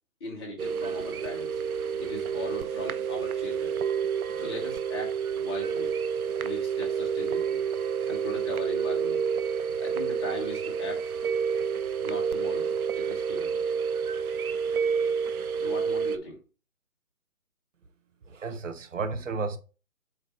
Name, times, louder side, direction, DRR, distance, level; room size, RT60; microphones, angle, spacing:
voice 1, 0.2-1.6 2.0-3.7 4.4-5.9 6.4-7.6 8.1-9.2 9.8-11.0 11.8-13.5 15.6-16.4, left 1 dB, 20° left, 1.3 m, -39 dB
sound 1, 0.6-16.2, right 6 dB, 80° right, 0.7 m, -29 dB
voice 2, 18.3-19.6, right 4 dB, 60° right, 1.0 m, -32 dB
7.8 x 2.8 x 4.3 m
hypercardioid pair, 165°, 43 cm